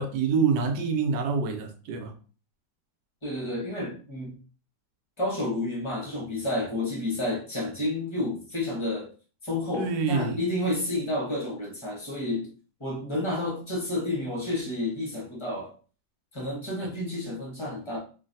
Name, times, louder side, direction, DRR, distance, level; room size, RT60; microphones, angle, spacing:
voice 1, 0.0-2.1 9.8-10.4, right 5 dB, 85° right, 1.2 m, -26 dB
voice 2, 3.2-4.4 5.2-9.1 9.4-12.5 12.8-15.7 16.3-18.0, left 1 dB, 25° left, 0.7 m, -30 dB
3.1 x 2.5 x 2.6 m
omnidirectional pair, 1.9 m